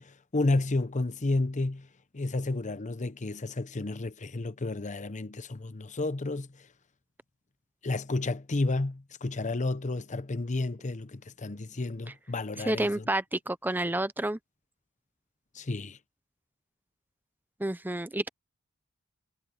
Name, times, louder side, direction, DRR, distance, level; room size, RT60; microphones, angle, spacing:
voice 1, 0.0-1.9 2.1-6.7 7.8-13.1 15.5-16.0, left 2 dB, 35° left, 0.8 m, -31 dB
voice 2, 12.7-14.4 17.6-18.3, right 1 dB, 10° right, 0.6 m, -29 dB
head